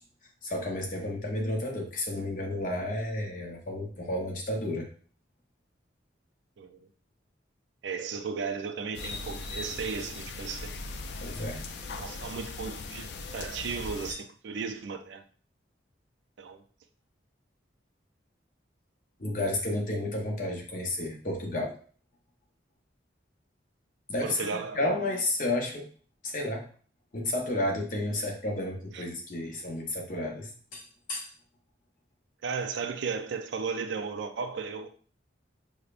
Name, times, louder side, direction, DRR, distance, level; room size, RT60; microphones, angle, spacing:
voice 1, 0.4-4.9 11.2-11.6 19.2-21.8 24.1-24.5 24.7-25.8 26.2-26.6 27.1-31.3, left 1 dB, 45° left, 0.8 m, -31 dB
voice 2, 6.6-6.9 7.8-10.7 11.9-15.2 16.4-16.6 24.2-24.8 28.9-29.0 32.4-34.9, right 5 dB, 70° right, 0.4 m, -35 dB
sound 1, 8.9-14.1, left 3 dB, 60° left, 0.4 m, -39 dB
5.0 x 2.1 x 2.4 m
head